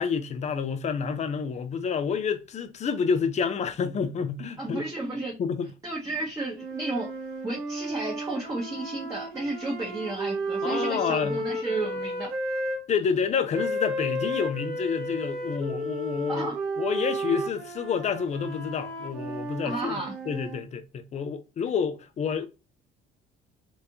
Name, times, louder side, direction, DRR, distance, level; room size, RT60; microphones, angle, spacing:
voice 1, 0.0-4.8 5.4-5.7 10.6-11.4 12.9-16.5 16.8-22.5, left 6 dB, 40° left, 0.7 m, -29 dB
voice 2, 4.6-5.3 5.8-7.1 7.4-12.3 16.3-16.6 19.6-20.1, right 2 dB, 20° right, 1.4 m, -32 dB
sound 1, 6.5-12.8 13.5-20.6, right 1 dB, 75° right, 1.4 m, -33 dB
3.5 x 3.3 x 2.7 m
cardioid pair, 110°, 17 cm